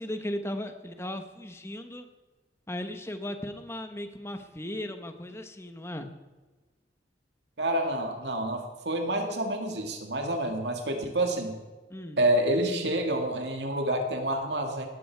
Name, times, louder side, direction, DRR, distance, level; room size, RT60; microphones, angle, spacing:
voice 1, 0.0-2.1 2.7-6.1 11.9-12.2, left 1 dB, 15° left, 7 dB, 1.2 m, -36 dB
voice 2, 7.6-11.6 12.2-14.9, right 1 dB, 75° right, 3 dB, 2.1 m, -28 dB
18.0 x 14.0 x 4.7 m, 1.2 s
head